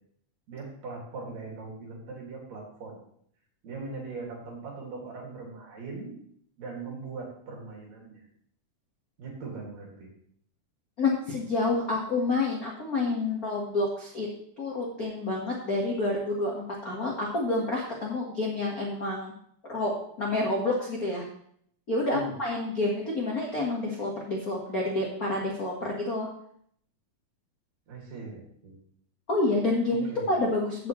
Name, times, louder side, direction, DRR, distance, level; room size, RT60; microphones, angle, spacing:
voice 1, 0.5-3.0 3.6-6.1 6.6-8.2 9.2-10.1 22.1-22.4 27.9-28.8 29.9-30.4, right 3 dB, 55° right, -1 dB, 3.4 m, -40 dB
voice 2, 11.0-14.3 14.6-19.3 19.7-19.9 20.2-21.2 21.9-26.3 29.3-30.9, left 2 dB, 50° left, -3 dB, 1.1 m, -28 dB
15.0 x 6.8 x 3.1 m, 0.65 s
omnidirectional pair, 4.1 m